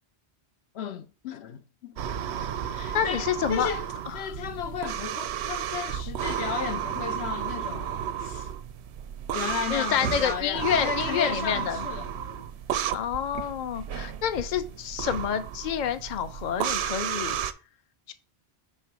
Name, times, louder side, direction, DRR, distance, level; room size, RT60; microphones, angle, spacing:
voice 1, 0.7-2.0 2.7-3.9 4.1-8.5 9.3-12.5, left 8 dB, 80° left, 0.9 m, -35 dB
sound 1, 2.0-17.5, right 9 dB, 90° right, 0.9 m, -33 dB
voice 2, 2.9-3.7 9.7-11.8 12.9-17.4 18.1-18.2, left 9 dB, 50° left, 0.7 m, -28 dB
5.5 x 3.7 x 5.9 m
omnidirectional pair, 1.1 m